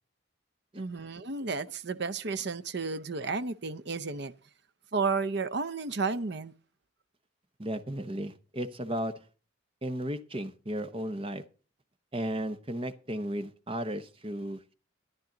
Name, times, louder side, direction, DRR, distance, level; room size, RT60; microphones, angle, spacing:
voice 1, 0.8-4.3 4.9-6.5, right 4 dB, 55° right, 0.7 m, -32 dB
voice 2, 7.6-9.1 9.8-11.4 12.1-14.7, equal, 25° right, 0.9 m, -34 dB
13.5 x 10.5 x 3.9 m
head